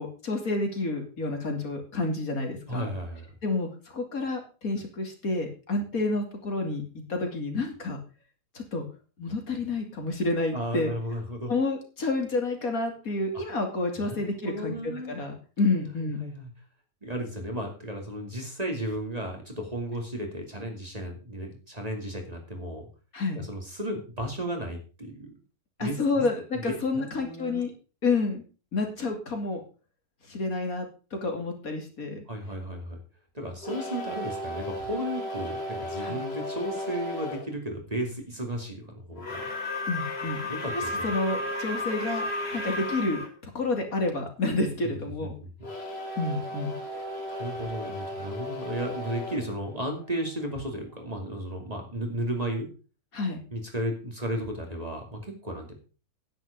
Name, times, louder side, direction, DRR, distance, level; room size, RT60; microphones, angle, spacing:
voice 1, 0.0-2.9 3.4-6.8 7.1-8.0 8.5-8.8 9.2-10.9 11.5-16.2 23.1-23.4 25.8-27.7 28.0-28.4 28.7-29.6 30.3-32.2 36.0-36.2 39.9-40.5 40.7-42.2 42.5-45.3 46.2-46.8 53.1-53.4, left 3 dB, 70° left, 3 dB, 3.1 m, -29 dB
voice 2, 2.7-3.3 10.5-11.5 14.0-15.2 15.7-16.5 17.0-22.9 23.3-25.4 25.8-26.3 26.5-27.6 32.3-33.0 33.3-39.5 40.5-40.9 44.8-45.0 45.2-45.5 46.9-52.7 53.5-55.7, equal, 25° right, 2 dB, 2.7 m, -34 dB
sound 1, 33.6-37.5 39.1-43.3 45.6-50.5, left 1 dB, 45° left, 2.6 m, -34 dB
10.0 x 9.9 x 5.3 m, 0.35 s
omnidirectional pair, 1.6 m